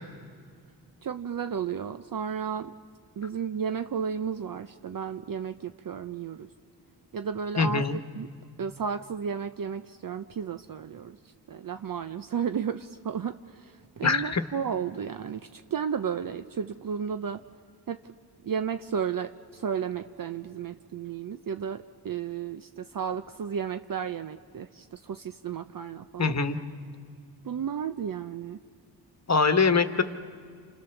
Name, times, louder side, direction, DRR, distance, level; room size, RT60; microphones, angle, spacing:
voice 1, 1.0-2.7 3.2-6.5 7.1-7.8 8.1-8.3 8.6-11.2 11.5-17.4 17.9-18.0 18.4-26.3 27.4-28.6, right 7 dB, 50° right, 9 dB, 0.7 m, -33 dB
voice 2, 7.6-8.0 14.0-14.4 26.2-26.6 29.3-30.0, left 4 dB, 40° left, 9 dB, 1.3 m, -23 dB
29.5 x 28.0 x 7.1 m, 2.1 s
wide cardioid pair, 100°, 43 cm